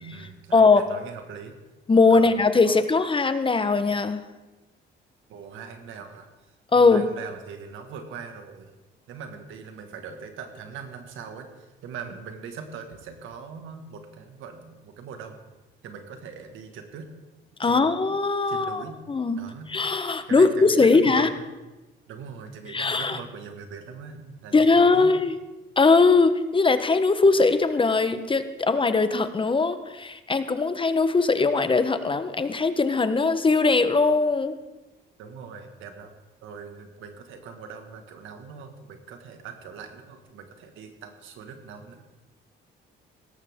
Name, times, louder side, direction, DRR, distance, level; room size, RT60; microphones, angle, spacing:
voice 1, 0.0-1.6 2.1-2.4 2.6-2.8 5.3-6.5 6.8-8.7 9.1-15.3 15.8-17.1 17.6-18.2 18.5-19.0 19.3-21.4 22.1-24.7 24.9-25.1 35.2-36.1 36.4-42.1, right 6 dB, 85° right, 6 dB, 1.8 m, -41 dB
voice 2, 0.5-0.9 1.9-4.2 6.7-7.1 17.6-19.4 19.7-21.3 22.7-23.2 24.5-25.4 25.8-34.6, left 4 dB, 25° left, 11 dB, 1.0 m, -20 dB
17.5 x 13.5 x 3.7 m, 1.1 s
cardioid pair, 90°, 20 cm